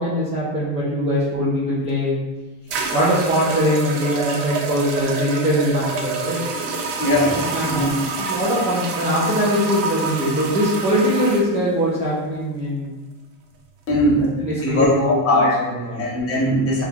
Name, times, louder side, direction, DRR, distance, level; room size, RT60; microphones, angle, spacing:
voice 1, 0.0-2.1 2.9-6.4 7.5-7.9 8.2-12.9 14.4-15.4 15.9-16.0, equal, 15° right, -9 dB, 0.4 m, -21 dB
sound 1, 1.9-2.0 2.7-11.5, right 3 dB, 60° right, 0.6 m, -27 dB
voice 2, 7.0-7.9 13.9-14.3 14.6-16.8, left 1 dB, 30° left, -4 dB, 0.9 m, -20 dB
2.9 x 2.3 x 3.5 m, 1.2 s
cardioid pair, 135°, 50 cm